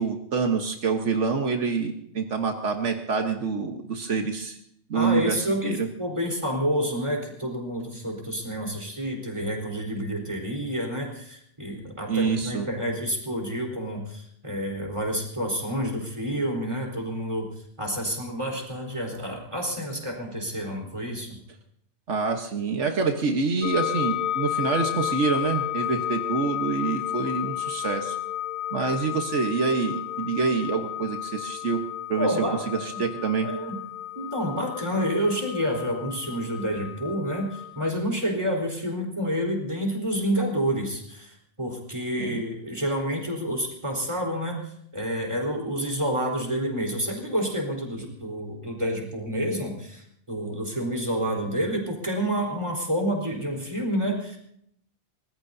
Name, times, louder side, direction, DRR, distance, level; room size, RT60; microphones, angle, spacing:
voice 1, 0.0-4.6 4.9-5.9 12.1-12.7 22.1-28.2 28.7-31.8 32.1-32.3 32.7-33.5 42.2-42.4, right 5 dB, 80° right, 4 dB, 1.6 m, -26 dB
voice 2, 4.9-21.4 32.2-32.8 33.4-33.8 34.2-54.4, equal, 25° right, 0 dB, 4.1 m, -29 dB
sound 1, 23.6-37.9, left 13 dB, 75° left, 1.9 m, -32 dB
24.5 x 20.0 x 2.7 m, 0.68 s
omnidirectional pair, 1.2 m